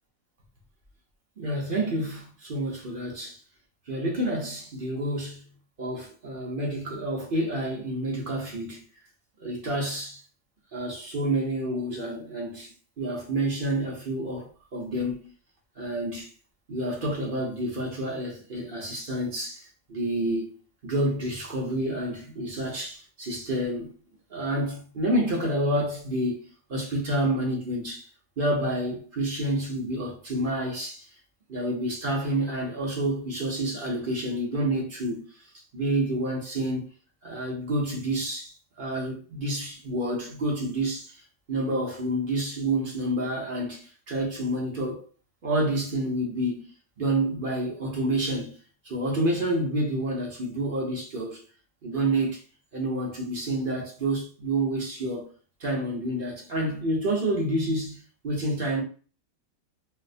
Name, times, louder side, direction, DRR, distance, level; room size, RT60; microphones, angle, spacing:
voice 1, 1.4-3.4 3.9-5.4 5.8-8.8 9.4-10.2 10.7-15.3 15.8-16.3 16.7-20.5 20.8-23.9 24.3-28.1 28.4-31.1 31.5-35.2 35.7-36.8 37.2-41.2 41.5-45.0 45.4-46.6 47.0-48.5 48.8-51.4 51.8-52.4 52.7-55.3 55.6-58.8, right 1 dB, 45° right, 0.7 m, -29 dB
4.1 x 2.0 x 2.6 m
omnidirectional pair, 2.0 m